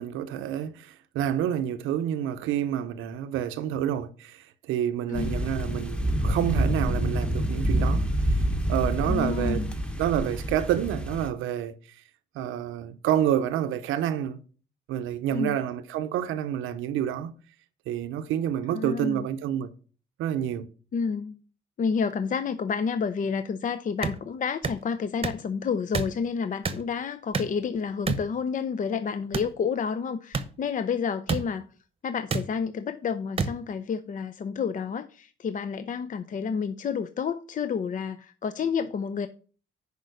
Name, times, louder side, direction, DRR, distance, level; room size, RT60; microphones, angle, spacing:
voice 1, 0.0-8.4 8.7-9.6 10.0-11.7 12.3-14.4 14.9-17.3 17.9-19.7 20.2-20.7, right 10 dB, 90° right, 0.7 m, -28 dB
sound 1, 5.1-11.3, right 1 dB, 5° left, 1.1 m, -27 dB
voice 2, 9.0-9.7 15.3-15.6 18.7-19.3 20.9-21.4 21.8-31.7 32.0-39.3, left 6 dB, 40° left, 0.5 m, -30 dB
Melon beating, 24.0-24.2 24.6-24.8 25.2-25.4 25.9-26.1 26.6-26.8 27.3-27.6 28.1-28.2 29.3-29.5 30.3-30.5 31.3-31.4 32.3-32.4 33.4-33.5, right 4 dB, 30° right, 0.9 m, -27 dB
6.6 x 5.0 x 6.5 m
cardioid pair, 90°, 20 cm